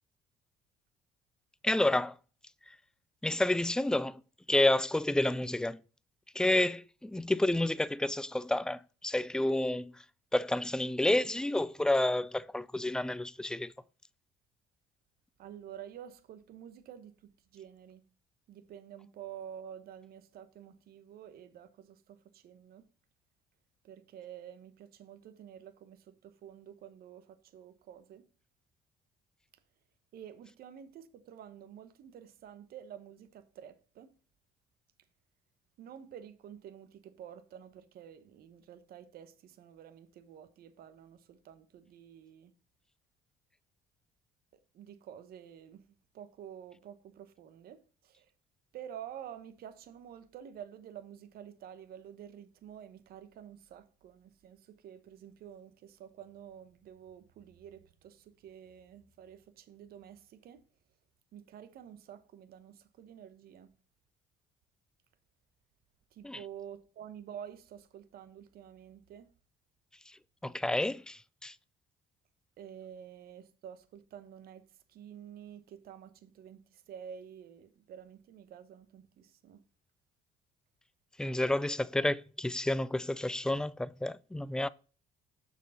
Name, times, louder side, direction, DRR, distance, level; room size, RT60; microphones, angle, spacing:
voice 1, 1.6-2.1 3.2-4.2 4.5-5.8 6.4-9.9 10.3-13.7 66.2-66.4 70.4-71.5 81.2-84.7, left 1 dB, 5° left, 0.3 m, -30 dB
voice 2, 15.4-18.0 18.5-22.9 23.8-28.3 30.1-34.1 35.8-42.5 44.7-48.3 48.7-60.6 61.3-63.7 66.1-69.3 72.6-79.6, right 9 dB, 65° right, 1.0 m, -49 dB
6.9 x 6.1 x 3.9 m
cardioid pair, 110°, 17 cm